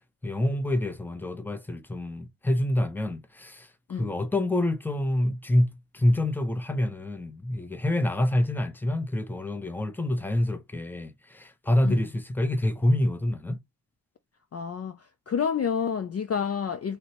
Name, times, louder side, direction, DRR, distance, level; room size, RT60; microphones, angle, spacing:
voice 1, 0.2-3.7 4.0-13.6, left 1 dB, 5° left, 0.7 m, -27 dB
voice 2, 14.5-15.0 15.3-17.0, left 7 dB, 35° left, 0.4 m, -29 dB
3.1 x 2.7 x 2.8 m
cardioid pair, 60°, 44 cm